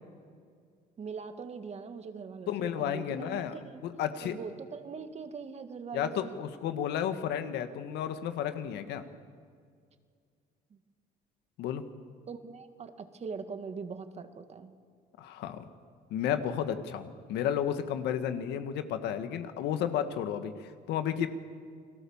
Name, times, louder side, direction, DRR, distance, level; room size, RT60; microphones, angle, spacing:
voice 1, 1.0-3.8 4.2-6.4 10.7-10.8 12.3-14.7, right 5 dB, 40° right, 8 dB, 1.9 m, -42 dB
voice 2, 2.5-3.5 3.8-4.3 5.9-9.0 11.6-11.8 15.2-15.7 16.1-21.3, left 9 dB, 85° left, 9 dB, 1.7 m, -32 dB
29.5 x 20.0 x 7.3 m, 2.1 s
cardioid pair, 110°, 17 cm